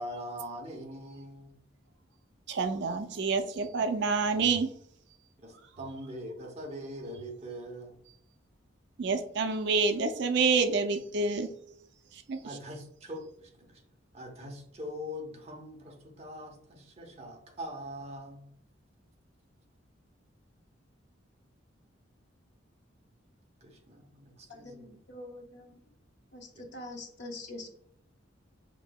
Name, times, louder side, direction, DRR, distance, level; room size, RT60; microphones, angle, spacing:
voice 1, 0.0-1.5 3.1-3.2 5.4-8.0 12.4-13.8 14.1-18.5 23.6-25.0 26.5-26.6, equal, 35° right, 2 dB, 0.8 m, -42 dB
voice 2, 2.5-4.7 9.0-11.5 12.3-12.4, right 4 dB, 60° right, 8 dB, 0.4 m, -27 dB
voice 3, 24.5-25.8 26.3-27.7, left 2 dB, 60° left, 3 dB, 0.8 m, -44 dB
6.0 x 2.7 x 2.2 m, 0.68 s
head